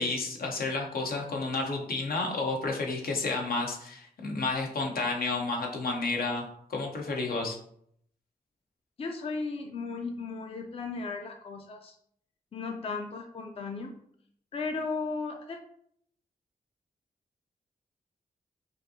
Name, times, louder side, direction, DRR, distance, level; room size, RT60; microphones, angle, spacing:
voice 1, 0.0-7.6, left 3 dB, 80° left, 1 dB, 0.8 m, -31 dB
voice 2, 9.0-11.9 12.5-13.9 14.5-15.6, left 4 dB, 40° left, 3 dB, 0.4 m, -35 dB
5.1 x 2.6 x 2.7 m, 0.67 s
wide cardioid pair, 100°, 15 cm